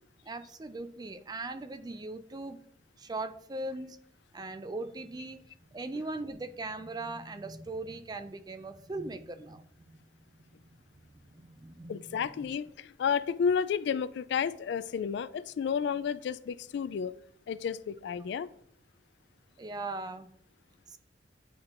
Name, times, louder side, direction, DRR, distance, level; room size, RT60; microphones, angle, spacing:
voice 1, 0.2-2.6 3.0-4.0 4.3-10.0 11.0-12.6 19.6-20.3 20.9-21.0, right 2 dB, 20° right, 0.4 m, -40 dB
voice 2, 11.9-17.1 17.5-18.5, left 7 dB, 70° left, 0.3 m, -31 dB
9.2 x 4.4 x 2.5 m
head